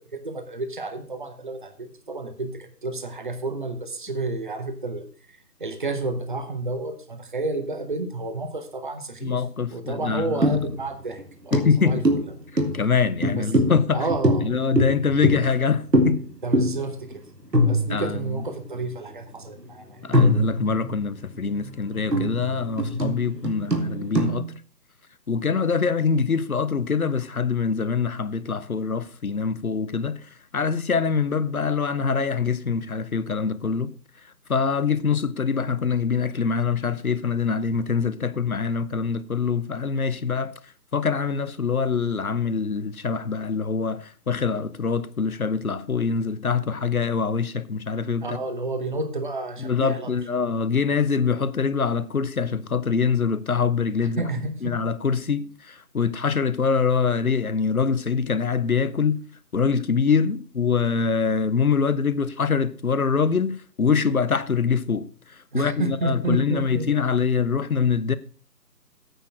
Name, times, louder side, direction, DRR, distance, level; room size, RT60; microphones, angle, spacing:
voice 1, 0.0-5.0 5.6-9.4 9.7-12.0 13.4-13.5 13.9-14.5 16.4-17.2 17.7-19.9 48.2-50.1 54.2-54.7 65.5-66.9, right 2 dB, 30° right, 1.0 m, -30 dB
voice 2, 9.2-10.5 11.5-12.0 12.7-14.1 14.4-16.2 17.9-18.4 20.0-24.5 25.3-30.2 30.5-33.9 34.5-40.5 40.9-48.4 49.6-54.2 54.6-59.2 59.5-65.1 65.5-68.1, left 5 dB, 60° left, 0.8 m, -24 dB
sound 1, 10.4-10.9 11.2-11.3 11.5-15.6 15.9-16.3 16.5-16.8 17.1-17.2 17.5-18.4 19.1-19.2 20.1-21.0 21.5-24.4, equal, 80° right, 2.3 m, -23 dB
9.1 x 6.7 x 6.1 m
figure-of-eight pair, 155°, 49 cm